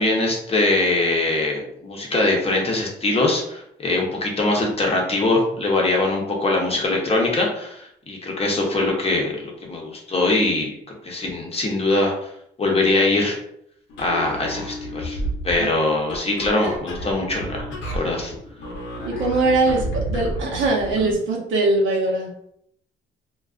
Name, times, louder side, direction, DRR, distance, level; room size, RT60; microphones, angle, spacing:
voice 1, 0.0-10.7 11.0-12.3 12.6-13.4 14.0-15.2 15.4-17.7 17.9-18.3, left 2 dB, 30° left, -1 dB, 0.7 m, -22 dB
sound 1, 13.9-21.2, right 1 dB, 70° left, 0.7 m, -31 dB
voice 2, 19.0-22.3, right 2 dB, 75° right, -2 dB, 0.8 m, -21 dB
2.4 x 2.2 x 2.3 m, 0.71 s
cardioid pair, 90°, 20 cm